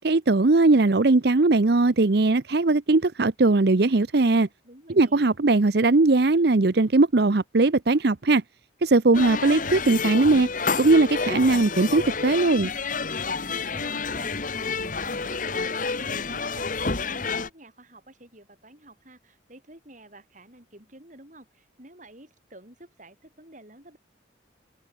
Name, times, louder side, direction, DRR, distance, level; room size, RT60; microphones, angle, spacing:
voice 1, 0.0-4.5 5.0-8.4 8.8-10.5 10.8-12.7, right 3 dB, 55° right, 0.7 m, -19 dB
voice 2, 4.6-5.3 13.5-24.0, right 1 dB, 40° right, 6.7 m, -49 dB
sound 1, 9.1-17.5, left 4 dB, 45° left, 1.5 m, -29 dB
open air
head